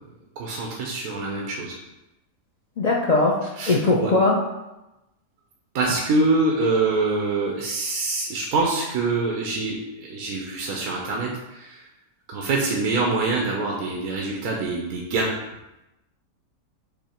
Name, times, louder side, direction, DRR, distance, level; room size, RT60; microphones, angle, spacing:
voice 1, 0.4-1.7 3.6-4.1 5.7-11.3 11.6-11.7 12.3-15.3, right 3 dB, 75° right, -2 dB, 1.3 m, -25 dB
voice 2, 2.8-4.5, left 2 dB, 75° left, -2 dB, 0.3 m, -20 dB
7.9 x 2.8 x 4.4 m, 0.97 s
omnidirectional pair, 1.6 m